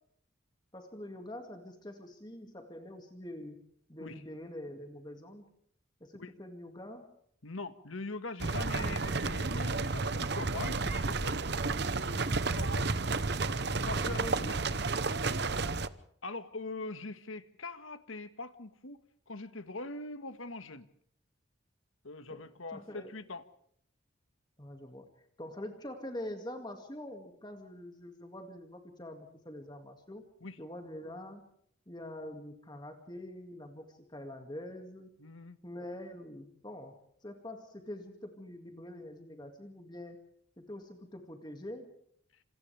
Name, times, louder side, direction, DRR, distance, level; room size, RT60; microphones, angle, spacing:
voice 1, 0.7-3.6 3.9-5.5 6.0-7.1 14.0-14.6 22.3-23.1 24.6-25.1 25.4-30.2 30.6-31.5 31.9-35.1 35.6-40.2 40.6-41.9, left 1 dB, 20° left, 5 dB, 2.2 m, -45 dB
voice 2, 7.4-11.4 12.1-12.9 13.9-14.2 14.5-14.6 16.2-19.0 19.3-20.9 22.0-23.4 30.4-30.6 35.2-35.6, left 3 dB, 85° left, 10 dB, 1.7 m, -42 dB
sound 1, 8.4-15.9, right 3 dB, 55° right, 1.0 m, -31 dB
28.0 x 27.5 x 3.5 m, 0.67 s
head